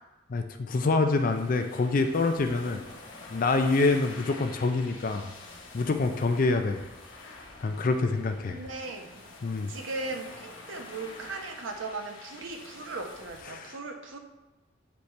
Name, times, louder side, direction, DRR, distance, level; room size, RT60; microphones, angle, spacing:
voice 1, 0.3-2.8 3.3-5.3 5.7-6.8 7.2-8.6 9.4-9.7 13.5-13.8, left 3 dB, 45° left, 7 dB, 0.4 m, -26 dB
sound 1, 1.1-13.4, left 3 dB, 85° left, 1.0 m, -47 dB
voice 2, 8.5-9.2 9.7-14.2, right 3 dB, 90° right, 3 dB, 0.9 m, -38 dB
8.1 x 4.2 x 3.2 m, 1.1 s
head